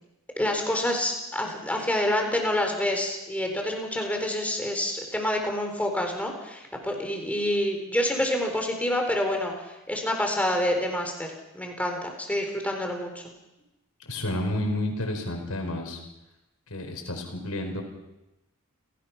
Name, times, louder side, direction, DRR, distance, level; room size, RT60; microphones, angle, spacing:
voice 1, 0.4-13.3, left 1 dB, 5° left, 3 dB, 4.1 m, -27 dB
voice 2, 14.1-16.0 16.7-17.8, left 1 dB, 85° left, 3 dB, 4.7 m, -30 dB
29.5 x 17.5 x 5.9 m, 0.98 s
head